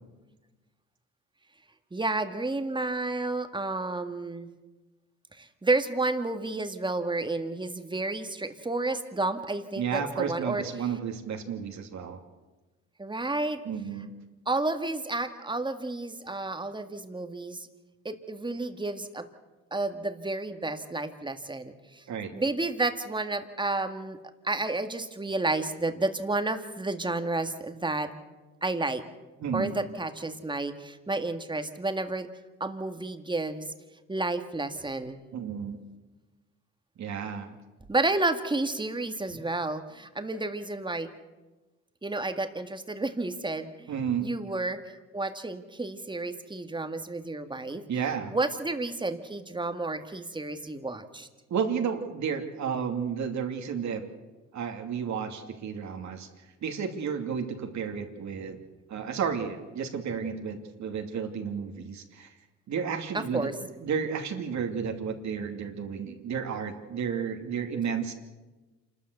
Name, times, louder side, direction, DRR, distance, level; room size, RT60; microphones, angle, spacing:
voice 1, 1.9-4.5 5.3-10.6 13.0-13.6 14.5-17.6 18.0-19.2 19.7-22.0 22.3-24.2 24.4-28.1 28.6-29.0 29.5-32.3 32.6-33.7 34.1-35.2 37.9-41.1 42.0-43.9 44.2-47.8 48.3-51.3 63.1-63.5, right 2 dB, 15° right, 7 dB, 1.9 m, -31 dB
voice 2, 9.8-12.2 13.6-14.1 22.1-22.3 29.4-29.8 35.3-35.8 37.0-37.5 43.9-44.4 47.9-48.4 51.5-54.0 54.5-56.3 56.6-58.6 58.9-62.3 62.7-63.5 63.8-68.1, right 7 dB, 65° right, 4 dB, 2.6 m, -32 dB
27.5 x 13.0 x 8.0 m, 1.2 s
cardioid pair, 90°, 30 cm